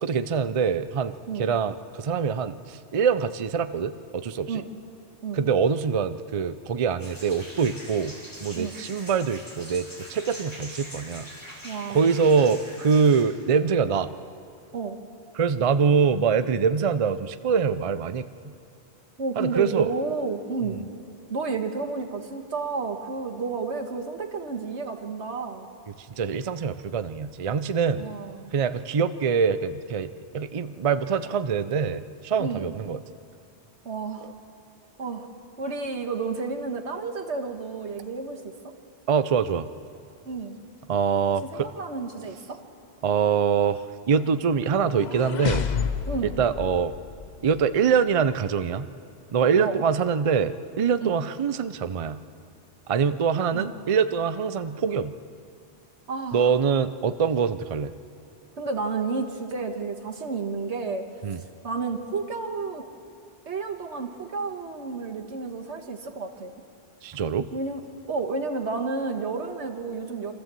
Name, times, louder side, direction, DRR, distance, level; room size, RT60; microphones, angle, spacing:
voice 1, 0.0-4.6 5.3-8.2 8.4-11.3 11.9-14.1 15.3-18.2 19.4-19.9 26.2-28.1 28.5-33.0 39.1-39.7 40.9-41.7 43.0-43.8 44.1-45.6 46.4-46.9 47.4-48.9 49.3-52.2 52.9-55.1 56.3-57.9 61.2-61.4 67.0-67.5, right 6 dB, 40° right, 12 dB, 0.5 m, -24 dB
sound 1, 7.0-13.2, equal, 15° left, 4.4 m, -43 dB
voice 2, 11.6-12.2 14.7-15.0 19.2-20.8 21.3-25.7 27.9-28.5 32.4-32.7 33.8-34.3 35.0-35.3 35.6-38.5 40.2-40.6 41.5-42.6 46.1-46.4 49.6-49.8 51.0-51.2 53.5-53.7 56.1-56.5 58.6-61.0 61.6-62.8 63.5-66.5 67.5-67.8 68.1-70.3, right 4 dB, 85° right, 4 dB, 1.8 m, -31 dB
sound 2, 44.6-47.7, left 6 dB, 45° left, 0.7 m, -31 dB
26.0 x 13.5 x 7.6 m, 2.4 s
omnidirectional pair, 1.1 m